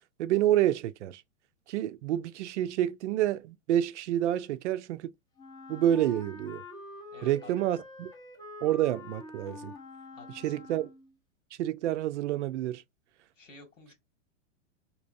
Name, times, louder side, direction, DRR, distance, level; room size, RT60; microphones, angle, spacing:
voice 1, 0.2-1.2 1.7-5.1 5.7-6.6 7.2-8.1 8.6-9.7 10.4-10.9 11.6-12.8, right 12 dB, 70° right, 0.5 m, -28 dB
Wind instrument woodwind instrument, 5.4-11.2, left 2 dB, 10° left, 0.5 m, -46 dB
voice 2, 7.1-7.5 10.1-10.7 13.4-13.9, left 3 dB, 90° left, 1.9 m, -52 dB
3.4 x 3.0 x 2.5 m
hypercardioid pair, 125°, 37 cm